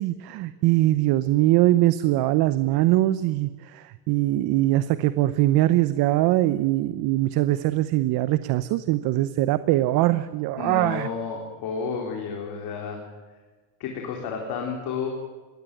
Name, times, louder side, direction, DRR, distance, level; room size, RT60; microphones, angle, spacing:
voice 1, 0.0-11.1, right 16 dB, 60° right, 14 dB, 0.9 m, -22 dB
voice 2, 10.6-13.1 13.8-15.1, left 5 dB, 60° left, 1 dB, 4.0 m, -31 dB
21.5 x 16.5 x 9.1 m, 1.3 s
supercardioid pair, 110°, 41 cm